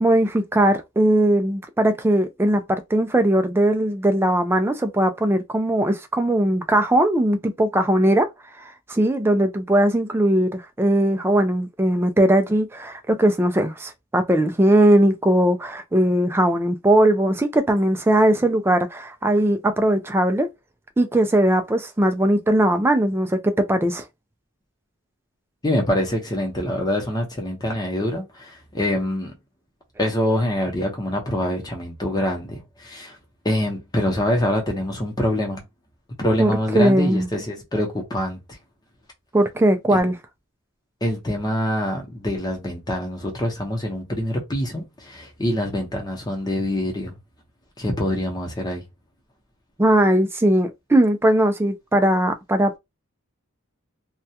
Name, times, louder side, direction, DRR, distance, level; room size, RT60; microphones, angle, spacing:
voice 1, 0.0-8.3 8.6-20.5 21.0-24.0 36.4-37.3 39.3-40.2 49.8-52.7, right 1 dB, 10° right, 0.3 m, -19 dB
voice 2, 25.6-29.3 30.0-33.2 33.4-35.6 36.2-38.4 39.9-40.0 41.0-47.1 47.8-48.8, left 1 dB, 20° left, 0.7 m, -25 dB
2.3 x 2.2 x 2.7 m
head